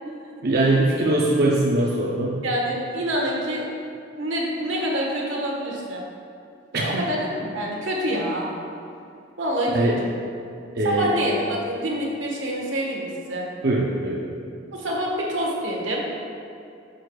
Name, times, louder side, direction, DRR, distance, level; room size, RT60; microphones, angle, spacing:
voice 1, 0.4-2.4 6.7-7.0 9.7-10.0 10.8-11.1 13.6-14.3, right 2 dB, 55° right, -3 dB, 0.6 m, -21 dB
voice 2, 2.4-3.7 4.1-6.0 6.7-8.5 9.4-10.1 10.8-13.5 14.7-16.0, equal, 90° right, -2 dB, 1.3 m, -26 dB
9.0 x 6.4 x 2.3 m, 2.6 s
head